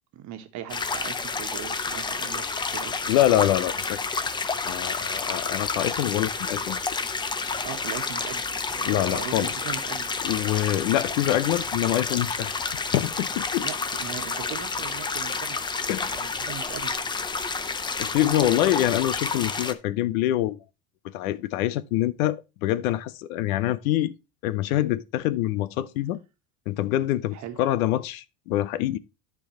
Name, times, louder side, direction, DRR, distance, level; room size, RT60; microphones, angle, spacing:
voice 1, 0.1-3.2 7.6-10.1 13.6-15.6 16.1-16.9 18.2-18.6 27.3-27.6, right 11 dB, 40° right, 1.4 m, -39 dB
sound 1, 0.7-19.7, left 4 dB, 10° left, 0.5 m, -30 dB
voice 2, 3.1-4.0 4.7-6.8 8.9-9.5 10.2-13.7 15.9-16.3 18.0-20.6 21.0-24.1 24.4-26.2 26.7-29.0, left 14 dB, 75° left, 0.9 m, -25 dB
13.0 x 4.7 x 3.1 m
supercardioid pair, 140°, 42 cm